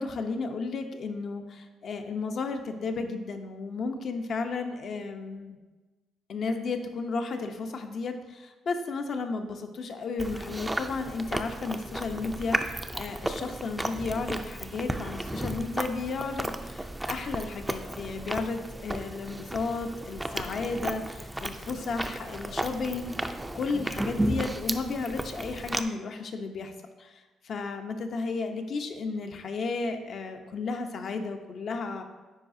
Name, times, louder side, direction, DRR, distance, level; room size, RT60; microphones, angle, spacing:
voice 1, 0.0-5.6 6.3-23.1 23.5-26.7 27.0-32.0, left 4 dB, 55° left, 6 dB, 0.7 m, -33 dB
Chewing mastication, 10.2-25.8, right 1 dB, 10° right, 0.4 m, -34 dB
9.7 x 4.8 x 2.7 m, 1.2 s
cardioid pair, 90°, 0 cm